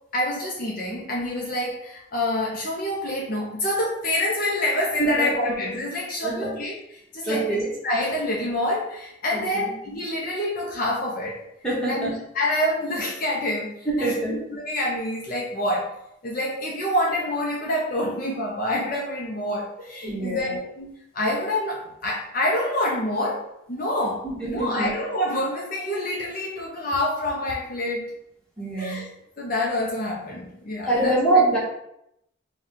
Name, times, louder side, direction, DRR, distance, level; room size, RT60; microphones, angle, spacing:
voice 1, 0.1-7.6 7.8-11.4 11.8-15.9 16.2-28.1 28.8-29.0 29.4-31.5, left 1 dB, 45° left, -3 dB, 0.6 m, -27 dB
voice 2, 5.0-5.5 6.2-6.5 7.3-7.7 9.3-9.7 11.6-12.1 13.8-14.3 20.0-20.6 24.2-24.9 28.6-29.1 30.9-31.6, right 2 dB, 5° left, -7 dB, 1.1 m, -24 dB
4.3 x 2.3 x 3.6 m, 0.79 s
head